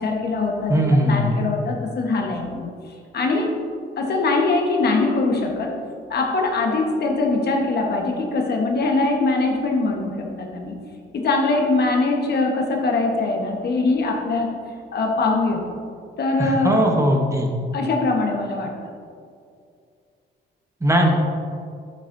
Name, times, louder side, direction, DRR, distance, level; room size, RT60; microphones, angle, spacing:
voice 1, 0.0-2.7 3.1-3.5 4.0-5.7 6.1-10.7 11.1-14.5 14.9-15.8 16.2-16.8 17.7-18.7, left 3 dB, 55° left, 1 dB, 1.3 m, -22 dB
voice 2, 0.7-1.4 16.4-17.5 20.8-21.1, equal, 15° right, 1 dB, 1.1 m, -19 dB
9.1 x 8.2 x 2.7 m, 2.3 s
cardioid pair, 90°, 20 cm